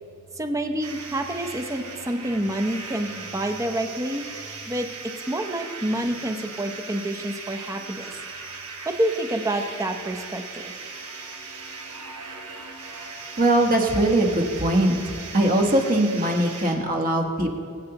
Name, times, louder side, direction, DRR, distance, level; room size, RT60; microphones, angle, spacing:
voice 1, 0.3-4.2 4.7-4.9 5.3-8.1 8.8-10.7, right 1 dB, 15° right, 5 dB, 0.7 m, -28 dB
sound 1, 0.8-16.7, right 4 dB, 85° right, 1.4 m, -38 dB
voice 2, 13.4-17.6, right 1 dB, 40° right, 2 dB, 1.3 m, -21 dB
20.5 x 8.9 x 2.9 m, 2.5 s
head